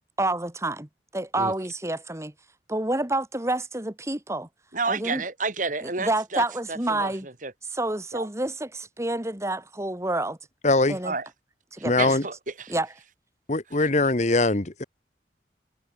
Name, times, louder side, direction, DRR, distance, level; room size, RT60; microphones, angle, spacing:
voice 1, 0.2-2.3 2.7-4.5 4.9-5.2 5.8-7.3 7.7-10.4 10.9-11.2 11.7-12.1 12.7-12.9, right 2 dB, 15° right, 2.0 m, -28 dB
voice 2, 4.7-7.5 8.1-8.3 11.0-11.3 12.0-12.7, right 4 dB, 45° right, 2.6 m, -31 dB
voice 3, 10.6-11.0 11.8-12.2 13.5-14.8, left 2 dB, 40° left, 1.3 m, -22 dB
head